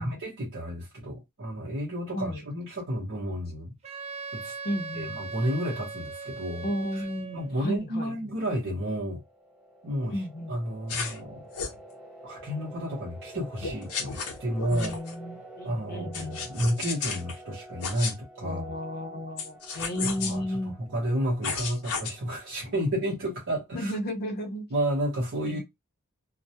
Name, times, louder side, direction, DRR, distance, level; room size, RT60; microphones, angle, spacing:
voice 1, 0.0-3.7 4.3-4.5 4.9-6.7 6.9-7.0 7.3-9.2 9.8-10.2 10.5-11.5 12.2-14.9 15.6-18.7 20.2-24.0 24.7-25.6, equal, 60° right, 0.8 m, -31 dB
Wind instrument woodwind instrument, 3.8-7.6, right 5 dB, 30° right, 0.3 m, -39 dB
voice 2, 4.6-5.2 6.6-8.1 10.1-10.6 14.7-16.4 18.4-20.7 22.7-22.8 23.7-24.7 25.5-25.6, equal, 45° left, 0.6 m, -33 dB
sound 1, 8.8-23.2, right 1 dB, 5° right, 1.1 m, -48 dB
sound 2, 10.9-11.2 11.5-11.8 13.6-15.1 16.1-17.3 17.8-18.1 19.4-20.3 21.4-22.1, left 5 dB, 90° left, 0.7 m, -33 dB
2.2 x 2.0 x 2.7 m
head